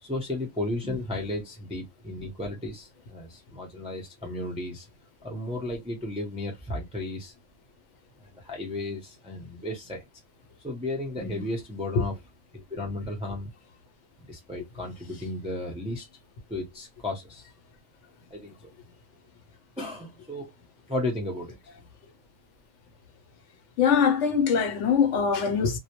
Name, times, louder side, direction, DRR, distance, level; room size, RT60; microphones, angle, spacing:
voice 1, 0.0-4.9 5.2-7.3 8.3-10.0 10.6-12.2 12.5-13.5 14.3-16.1 16.5-17.5 18.3-18.5 19.8-20.5 20.9-21.5, left 1 dB, 10° right, 0.4 m, -34 dB
voice 2, 23.8-25.8, left 6 dB, 70° left, 0.9 m, -23 dB
2.1 x 2.1 x 2.7 m
omnidirectional pair, 1.3 m